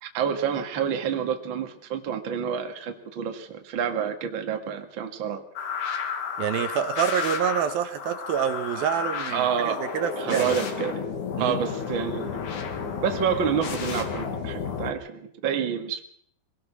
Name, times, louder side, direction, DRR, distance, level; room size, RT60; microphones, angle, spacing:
voice 1, 0.0-5.4 8.7-8.8 9.3-9.8 10.2-11.1 11.4-12.4 13.0-16.0, right 7 dB, 40° right, 4 dB, 2.1 m, -28 dB
sound 1, 5.6-14.9, left 6 dB, 55° left, 3.2 m, -32 dB
voice 2, 6.4-10.6 11.4-11.7, right 9 dB, 75° right, 8 dB, 2.9 m, -27 dB
24.0 x 18.0 x 6.1 m, 0.62 s
omnidirectional pair, 4.5 m